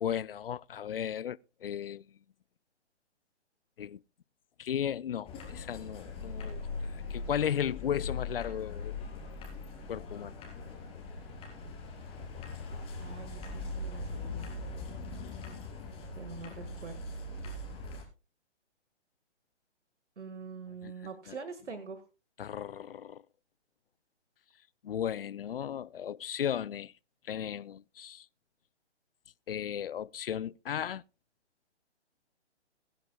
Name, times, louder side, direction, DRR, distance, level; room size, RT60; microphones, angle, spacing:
voice 1, 0.0-2.0 3.8-4.0 4.6-6.6 6.9-8.9 9.9-10.4 20.8-20.9 21.3-21.4 22.4-23.2 24.8-26.9 27.3-28.3 29.5-31.0, left 9 dB, 55° left, 0.5 m, -35 dB
sound 1, 5.2-18.0, left 3 dB, 15° left, 3.6 m, -41 dB
voice 2, 13.0-14.5 16.1-17.2 20.2-22.0, right 5 dB, 80° right, 1.8 m, -45 dB
22.0 x 10.5 x 2.3 m
figure-of-eight pair, 140°, 35 cm